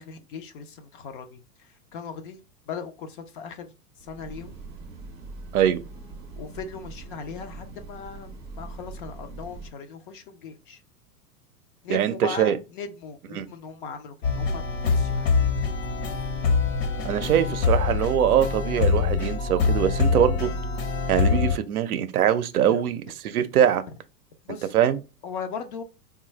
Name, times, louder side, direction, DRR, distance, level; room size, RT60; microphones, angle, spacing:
voice 1, 0.0-2.4 2.7-4.6 6.4-8.3 8.6-10.8 11.8-15.4 22.7-22.8 24.4-24.7 25.2-25.8, left 5 dB, 35° left, 0.4 m, -38 dB
Train, 4.0-9.7, right 3 dB, 15° right, 0.5 m, -42 dB
voice 2, 11.9-12.6 13.4-13.5 17.0-20.5 21.1-23.8 24.7-25.0, right 10 dB, 70° right, 0.6 m, -22 dB
sound 1, 14.2-21.6, left 5 dB, 55° left, 0.9 m, -24 dB
3.7 x 2.3 x 3.1 m
hypercardioid pair, 105°, 47 cm